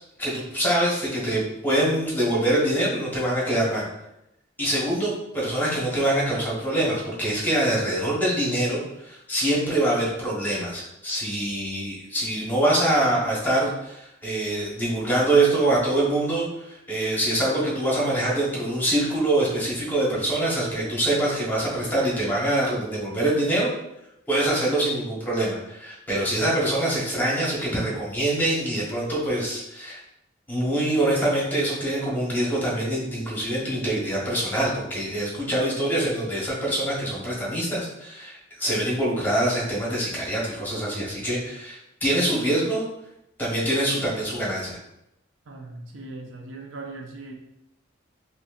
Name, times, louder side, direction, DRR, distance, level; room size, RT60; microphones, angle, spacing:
voice 1, 0.2-3.9 4.6-23.7 24.3-30.0 30.5-42.8 43.4-44.8, right 1 dB, 10° left, -5 dB, 1.0 m, -24 dB
voice 2, 45.5-47.3, right 2 dB, 75° right, 2 dB, 0.6 m, -39 dB
4.1 x 3.0 x 2.4 m, 0.85 s
head